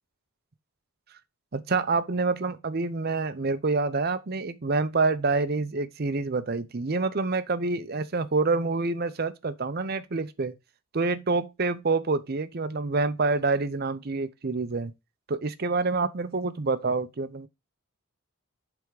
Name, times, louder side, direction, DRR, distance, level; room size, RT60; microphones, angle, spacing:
voice 1, 1.5-10.5 10.9-14.9 15.3-17.5, right 3 dB, 45° right, 0.6 m, -27 dB
8.0 x 3.5 x 4.7 m
head